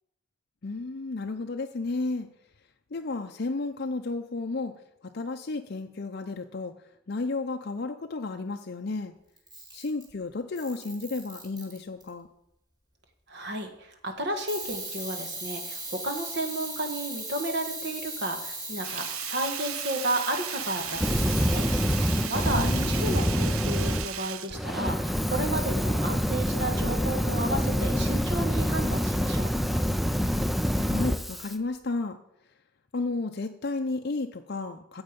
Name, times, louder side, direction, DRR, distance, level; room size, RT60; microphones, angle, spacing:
voice 1, 0.6-2.3 2.9-4.7 5.1-6.7 7.1-9.1 9.7-12.3 22.4-23.2 30.8-32.2 32.9-35.0, left 3 dB, 50° left, 5 dB, 0.6 m, -32 dB
Camera, 9.4-10.1 10.6-12.1 14.5-23.2, right 2 dB, 20° right, 3.0 m, -38 dB
voice 2, 13.3-21.7 22.3-29.5, right 1 dB, 55° right, 5 dB, 1.7 m, -32 dB
Sink (filling or washing), 18.8-25.3 25.7-25.8, right 11 dB, 90° right, 0.6 m, -37 dB
Fire, 20.9-24.1 24.5-31.5, equal, ahead, 0.4 m, -26 dB
14.5 x 7.9 x 5.2 m, 0.84 s
head